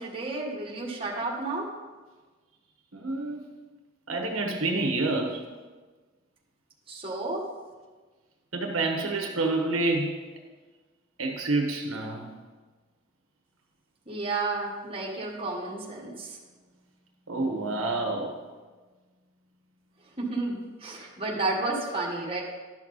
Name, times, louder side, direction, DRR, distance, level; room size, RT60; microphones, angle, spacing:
voice 1, 0.0-1.7 6.9-7.4 14.1-16.4 20.2-22.4, right 2 dB, 25° right, -4 dB, 1.6 m, -31 dB
voice 2, 2.9-3.4 4.1-5.4 8.5-10.2 11.2-12.3 17.3-18.4, right 2 dB, 80° right, 3 dB, 1.3 m, -28 dB
11.5 x 6.3 x 4.1 m, 1.3 s
head